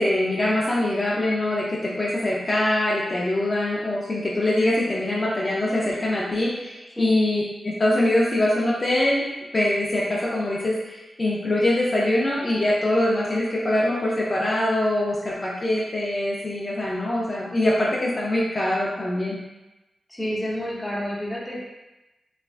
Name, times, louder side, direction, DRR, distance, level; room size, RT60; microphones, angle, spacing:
voice 1, 0.0-19.4, left 1 dB, 40° left, -6 dB, 0.5 m, -23 dB
voice 2, 20.1-21.7, equal, 5° left, -5 dB, 0.9 m, -29 dB
3.2 x 2.2 x 2.4 m, 1.0 s
cardioid pair, 50°, 0 cm